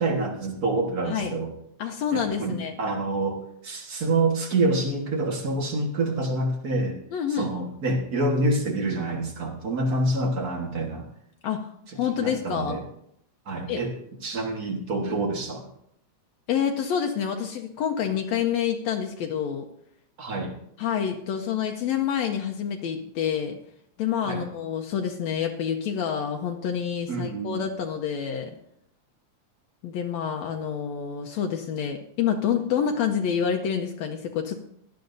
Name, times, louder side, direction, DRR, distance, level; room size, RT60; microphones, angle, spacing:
voice 1, 0.0-1.5 2.1-7.0 7.3-11.1 11.9-12.8 13.4-13.9 14.2-15.7 20.2-20.6 24.2-24.5 27.1-27.7, right 2 dB, 40° right, 2 dB, 1.5 m, -27 dB
voice 2, 1.8-2.7 7.1-7.5 11.4-12.8 13.7-13.8 16.5-19.7 20.8-23.6 24.0-28.6 29.8-34.6, left 8 dB, 75° left, 3 dB, 1.9 m, -27 dB
17.5 x 11.5 x 2.6 m, 0.72 s
omnidirectional pair, 3.3 m